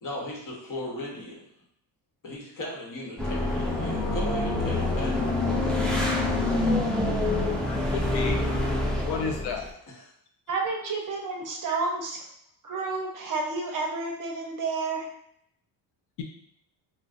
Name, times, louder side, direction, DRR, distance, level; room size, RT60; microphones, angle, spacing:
voice 1, 0.0-1.5 2.2-5.7 9.9-10.1, left 1 dB, 45° left, -2 dB, 1.0 m, -37 dB
sound 1, 3.2-9.7, left 2 dB, ahead, 0.4 m, -26 dB
voice 2, 7.3-8.4 9.1-9.7, left 5 dB, 60° left, 3 dB, 0.5 m, -33 dB
voice 3, 10.5-12.2 12.6-15.1, right 3 dB, 45° right, 1 dB, 0.6 m, -30 dB
3.8 x 2.1 x 2.4 m, 0.71 s
cardioid pair, 110°, 46 cm